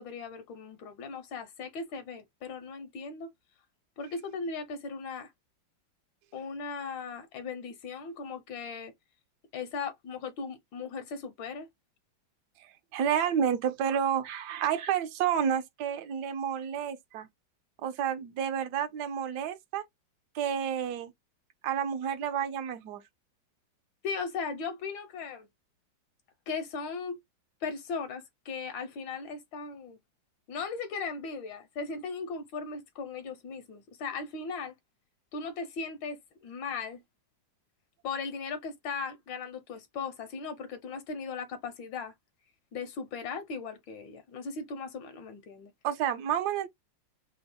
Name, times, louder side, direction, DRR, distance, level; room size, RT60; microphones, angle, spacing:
voice 1, 0.0-3.3 4.0-5.3 6.3-8.9 9.5-11.7 24.0-25.5 26.5-27.2 27.6-30.0 30.5-34.7 35.3-37.0 38.0-42.1 42.7-45.7, left 5 dB, 80° left, 1.4 m, -38 dB
voice 2, 12.6-17.3 17.8-19.8 20.3-21.1 21.6-23.0 45.8-46.7, right 9 dB, 70° right, 1.2 m, -30 dB
3.5 x 2.0 x 4.1 m
omnidirectional pair, 2.1 m